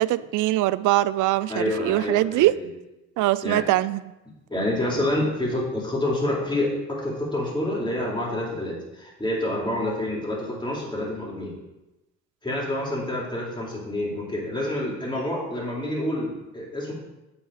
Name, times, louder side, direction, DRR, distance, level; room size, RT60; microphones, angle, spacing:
voice 1, 0.0-2.5 3.2-4.0, right 16 dB, 85° right, 0.5 m, -22 dB
voice 2, 1.5-2.7 3.4-3.7 4.5-11.6 12.4-16.9, left 1 dB, 15° left, 3.6 m, -28 dB
8.6 x 7.1 x 4.9 m
cardioid pair, 90°, 30 cm